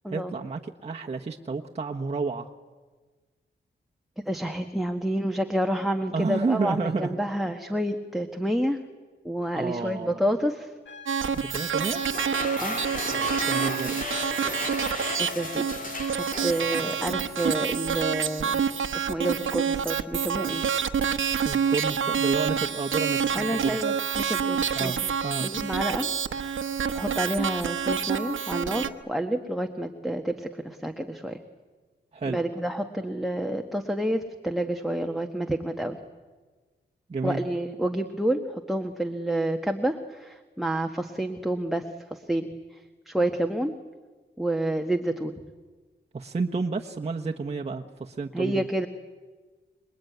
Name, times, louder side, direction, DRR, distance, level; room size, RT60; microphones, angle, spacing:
voice 1, 0.1-2.5 6.1-7.2 7.4-7.5 9.6-10.2 11.3-12.0 13.5-14.1 21.4-23.8 24.7-25.5 32.1-32.4 37.1-37.4 46.1-48.7, right 4 dB, 35° right, 0 dB, 1.3 m, -30 dB
voice 2, 4.2-8.8 9.2-10.7 12.6-12.8 15.2-15.7 16.4-18.6 18.9-20.6 23.3-25.0 25.4-26.1 26.4-26.6 26.9-31.4 32.2-36.0 37.2-41.8 42.1-42.5 43.1-43.7 44.4-45.3 48.3-48.9, right 1 dB, ahead, 4 dB, 1.4 m, -29 dB
sound 1, 10.9-16.4, left 6 dB, 70° left, 1.6 m, -43 dB
sound 2, 11.1-28.9, right 7 dB, 85° right, 1.1 m, -28 dB
sound 3, 12.0-17.6, left 2 dB, 45° left, 3.3 m, -35 dB
26.5 x 22.5 x 9.4 m, 1.3 s
wide cardioid pair, 120°, 20 cm